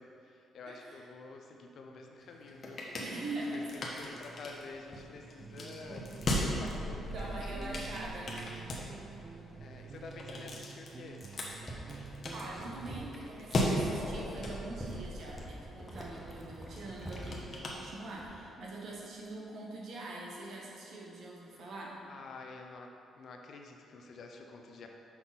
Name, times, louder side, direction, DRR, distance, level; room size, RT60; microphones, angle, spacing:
voice 1, 0.0-2.9 3.5-6.1 6.4-7.6 9.6-11.2 21.6-21.7 22.1-22.9 23.2-24.9, left 3 dB, 60° left, 2 dB, 0.7 m, -49 dB
voice 2, 0.7-1.0 3.0-4.1 7.0-8.6 12.3-22.0, right 2 dB, 65° right, -3 dB, 1.3 m, -43 dB
sound 1, 2.2-18.5, left 1 dB, 40° left, 1.0 m, -39 dB
sound 2, 5.4-12.9, right 5 dB, 45° right, 0.3 m, -48 dB
sound 3, 11.6-18.5 18.8-19.2, right 1 dB, 5° left, 1.0 m, -47 dB
5.9 x 5.4 x 4.2 m, 2.6 s
cardioid pair, 90°, 0 cm